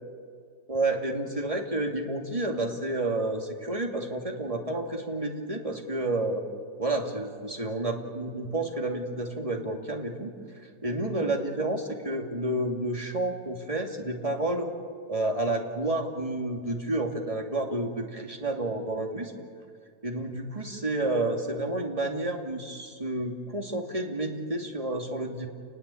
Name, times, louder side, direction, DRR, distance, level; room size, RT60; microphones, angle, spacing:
voice 1, 0.7-6.5 6.8-10.3 10.8-14.7 15.1-19.3 20.0-25.5, right 2 dB, 20° right, 2 dB, 2.7 m, -30 dB
30.0 x 20.5 x 8.6 m, 2.2 s
omnidirectional pair, 1.8 m